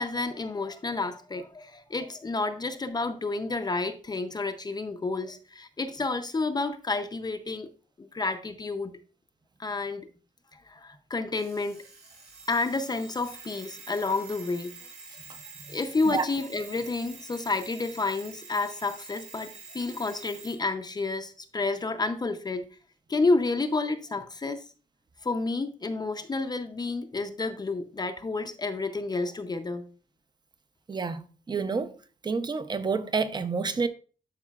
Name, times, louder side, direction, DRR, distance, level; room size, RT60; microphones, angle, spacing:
voice 1, 0.0-7.7 8.0-8.9 9.6-10.0 10.5-11.8 12.5-14.7 15.7-22.6 23.1-24.6 25.2-29.8, left 3 dB, 25° left, 0.6 m, -30 dB
Alarm, 11.3-20.6, right 5 dB, 85° right, 2.4 m, -47 dB
voice 2, 30.9-31.9 32.2-33.9, right 4 dB, 30° right, 0.6 m, -29 dB
11.5 x 4.8 x 2.3 m
wide cardioid pair, 140°, 16 cm